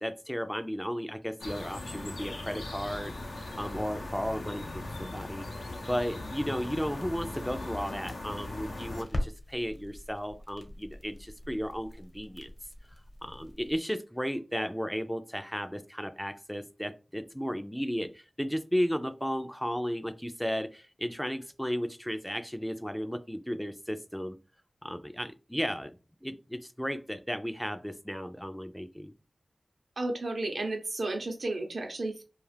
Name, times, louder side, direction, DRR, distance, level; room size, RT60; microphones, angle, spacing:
voice 1, 0.0-3.1 3.6-5.5 5.8-12.5 13.2-24.4 24.8-29.1, equal, 5° left, 8 dB, 0.3 m, -34 dB
sound 1, 1.4-9.0, left 2 dB, 90° left, 0.6 m, -39 dB
sound 2, 7.0-13.8, left 1 dB, 50° left, 0.9 m, -44 dB
voice 2, 30.0-32.2, right 2 dB, 80° right, 3 dB, 0.7 m, -33 dB
2.4 x 2.4 x 3.2 m, 0.32 s
cardioid pair, 40°, 0 cm